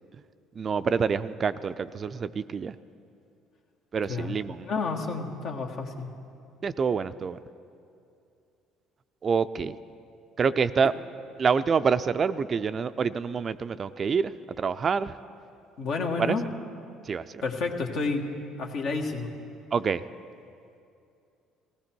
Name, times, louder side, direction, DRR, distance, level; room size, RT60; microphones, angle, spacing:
voice 1, 0.6-2.7 3.9-4.7 6.6-7.4 9.2-9.8 10.4-10.9 11.4-14.3 14.6-15.1 16.2-16.4 17.1-17.4 19.7-20.0, right 5 dB, 40° right, 12 dB, 0.4 m, -26 dB
voice 2, 4.1-6.1 15.8-16.4 17.4-18.3 18.6-19.3, left 4 dB, 65° left, 2 dB, 1.5 m, -30 dB
16.5 x 15.5 x 4.5 m, 2.6 s
hypercardioid pair, 60°, 0 cm